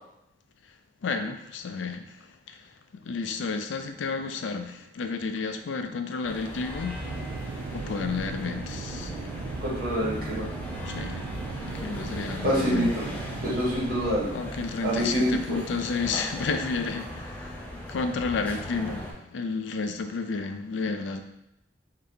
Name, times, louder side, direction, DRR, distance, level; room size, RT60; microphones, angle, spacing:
voice 1, 1.0-2.7 3.0-7.0 7.7-9.2 10.8-11.3 11.6-12.9 14.3-21.2, left 4 dB, 80° left, 7 dB, 0.4 m, -31 dB
sound 1, 6.2-19.1, equal, 10° left, 0.5 m, -38 dB
sound 2, 7.0-14.3, right 5 dB, 80° right, 0.3 m, -38 dB
voice 2, 9.6-10.4 12.4-13.0 13.4-14.3 14.8-15.3, equal, 50° right, -6 dB, 1.4 m, -26 dB
3.9 x 2.7 x 3.3 m, 0.84 s
head